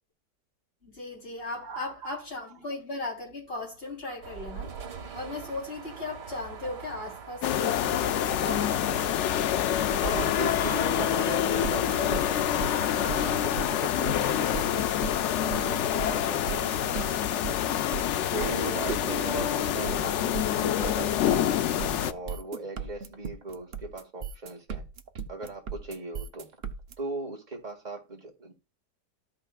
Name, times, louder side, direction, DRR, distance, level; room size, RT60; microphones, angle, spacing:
voice 1, 0.8-4.8 5.1-9.2, left 2 dB, 35° left, 3.7 m, -37 dB
voice 2, 1.6-2.1 10.0-12.5 13.0-14.9 15.4-17.7 18.3-21.5 22.1-24.9 25.3-26.5 27.0-28.5, right 2 dB, 25° right, 1.9 m, -38 dB
sound 1, 4.2-13.5, right 5 dB, 80° right, 2.0 m, -42 dB
sound 2, 7.4-22.1, left 10 dB, 85° left, 0.6 m, -27 dB
sound 3, 11.6-26.9, right 7 dB, 45° right, 0.9 m, -37 dB
14.0 x 5.8 x 2.3 m
omnidirectional pair, 1.8 m